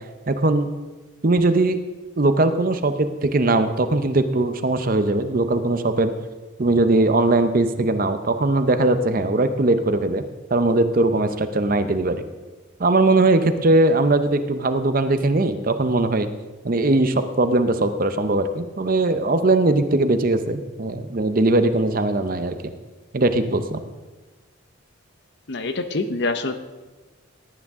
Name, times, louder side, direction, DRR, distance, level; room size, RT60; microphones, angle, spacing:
voice 1, 0.3-0.7 1.2-1.8 2.2-6.1 6.6-10.2 10.5-12.2 12.8-16.3 16.6-22.7 23.1-23.8, right 2 dB, 40° right, 10 dB, 0.6 m, -20 dB
voice 2, 25.5-26.6, left 3 dB, 55° left, 9 dB, 0.8 m, -25 dB
18.0 x 9.7 x 3.6 m, 1.3 s
head